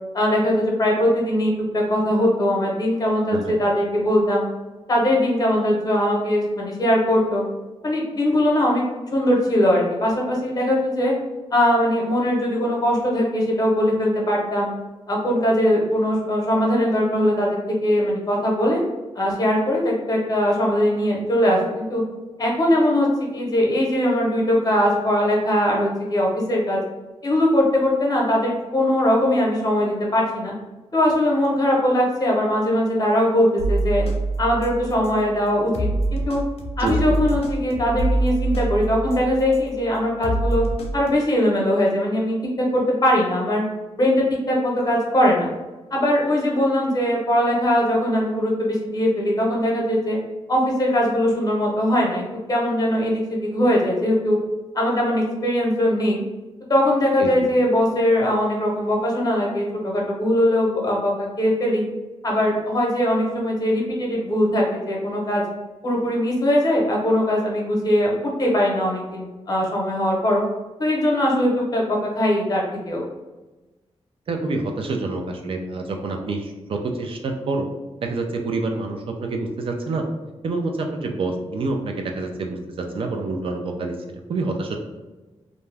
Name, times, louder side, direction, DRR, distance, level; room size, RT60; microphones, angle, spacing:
voice 1, 0.1-4.4 4.9-7.4 7.8-8.8 9.1-11.1 11.5-14.7 15.1-18.8 19.1-22.0 22.4-23.1 23.3-26.8 27.2-30.5 30.9-34.0 34.4-36.4 36.8-40.6 40.9-42.4 42.7-43.6 44.0-45.5 45.9-50.2 50.5-54.4 54.7-56.2 56.7-61.8 62.2-65.4 65.8-70.4 70.8-73.0, left 1 dB, 35° left, -2 dB, 0.8 m, -21 dB
voice 2, 3.3-3.6 36.8-37.2 57.2-57.5 74.3-77.7 78.0-80.0 80.4-84.0 84.3-84.8, right 3 dB, 55° right, 3 dB, 0.4 m, -27 dB
sound 1, 33.6-35.2 35.7-39.7 40.2-41.1, right 2 dB, 65° left, 0.5 m, -25 dB
2.5 x 2.2 x 3.2 m, 1.1 s
wide cardioid pair, 140°, 11 cm